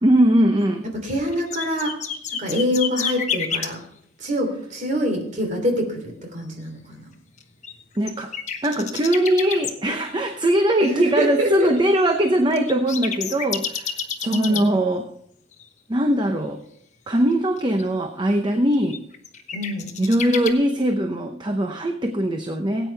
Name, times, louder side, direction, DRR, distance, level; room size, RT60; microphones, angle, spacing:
voice 1, 0.0-0.8 8.0-8.3 8.6-15.1 15.9-16.6 17.1-19.0 20.0-22.9, right 1 dB, 20° right, 4 dB, 0.7 m, -21 dB
voice 2, 0.8-1.9 2.4-3.8 4.2-7.1 10.8-11.7 14.2-14.6 19.5-19.9, equal, 40° right, 2 dB, 3.2 m, -25 dB
sound 1, 0.9-3.7 7.4-9.7 10.1-14.7 15.5-15.6 17.3-17.8 18.9-20.5, left 7 dB, 35° left, 1.2 m, -29 dB
18.0 x 9.1 x 3.4 m, 0.67 s
head